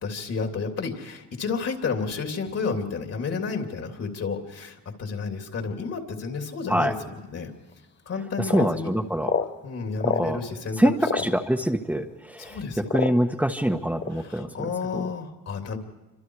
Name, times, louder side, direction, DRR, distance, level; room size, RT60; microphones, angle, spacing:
voice 1, 0.0-7.5 8.0-8.9 9.6-11.3 12.4-13.1 14.1-15.8, left 5 dB, 55° left, 4 dB, 3.1 m, -31 dB
sound 1, 7.7-7.8 8.5-8.7 9.2-9.5 10.0-10.3 11.0-11.3 12.1-12.2 12.9-13.3 14.0-14.1, left 6 dB, 35° left, 1.1 m, -26 dB
voice 2, 8.5-9.3 10.0-10.4 10.8-12.6 12.9-14.5, equal, 5° right, 3 dB, 1.3 m, -24 dB
28.0 x 25.5 x 4.8 m, 1.0 s
cardioid pair, 90°, 30 cm